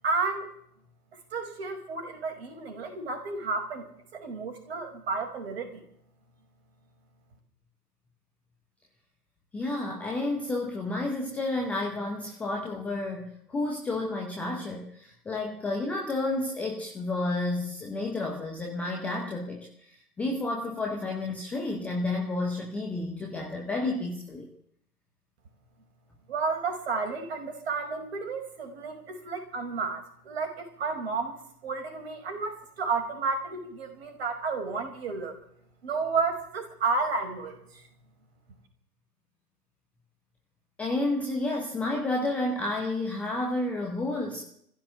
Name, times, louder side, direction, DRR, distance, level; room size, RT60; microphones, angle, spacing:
voice 1, 0.0-0.5 1.3-5.8 26.3-31.3 31.6-35.3 35.8-37.8, right 4 dB, 40° right, 5 dB, 5.3 m, -32 dB
voice 2, 9.5-24.5 40.8-44.4, left 2 dB, 5° left, -1 dB, 0.8 m, -31 dB
23.5 x 15.0 x 7.7 m, 0.69 s
figure-of-eight pair, 135°, 47 cm